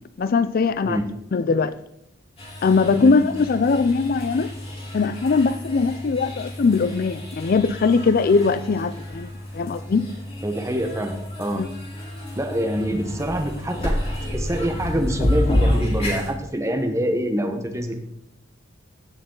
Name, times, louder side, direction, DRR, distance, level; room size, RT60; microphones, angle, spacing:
voice 1, 0.2-1.0 1.3-1.8 2.6-4.5 4.9-10.1 11.5-11.7, left 4 dB, 50° left, 0.4 m, -20 dB
sound 1, 2.4-16.3, left 1 dB, 30° left, 3.6 m, -29 dB
voice 2, 10.4-11.7 12.3-18.0, equal, 15° right, 1.0 m, -26 dB
15.5 x 6.6 x 3.8 m
head